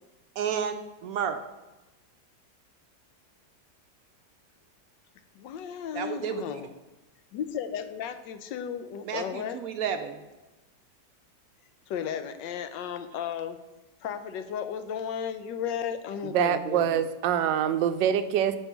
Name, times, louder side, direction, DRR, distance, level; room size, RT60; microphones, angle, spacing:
voice 1, 0.4-1.4 5.9-6.4 9.1-10.2, right 7 dB, 70° right, 7 dB, 0.9 m, -31 dB
voice 2, 5.4-6.7 7.3-9.6 11.9-13.6 14.0-17.0, left 8 dB, 90° left, 10 dB, 1.3 m, -34 dB
voice 3, 16.3-18.6, right 9 dB, 90° right, 11 dB, 1.3 m, -25 dB
7.9 x 4.6 x 6.0 m, 1.1 s
omnidirectional pair, 1.9 m